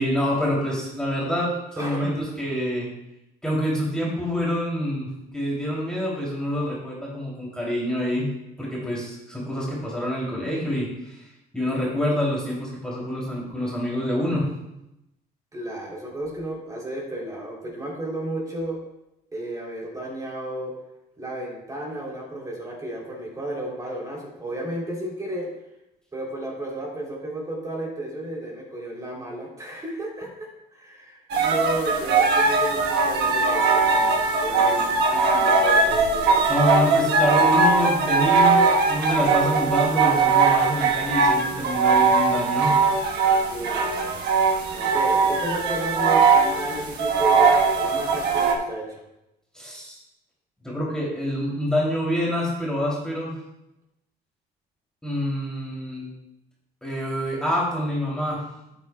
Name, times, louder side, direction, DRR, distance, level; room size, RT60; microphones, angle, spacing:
voice 1, 0.0-2.9 3.4-8.3 8.6-11.2 11.5-14.5 36.5-42.7 49.5-50.0 50.6-53.4 55.0-56.1 56.8-58.4, left 1 dB, 5° left, -5 dB, 2.7 m, -26 dB
voice 2, 1.8-2.3 15.5-18.8 19.3-20.7 21.2-25.5 26.1-34.1 34.4-36.4 43.5-44.2 44.7-49.0, right 1 dB, 20° right, -3 dB, 2.9 m, -33 dB
sound 1, 31.3-48.6, right 4 dB, 75° right, 1.2 m, -20 dB
11.5 x 8.5 x 2.2 m, 0.88 s
cardioid pair, 110°, 17 cm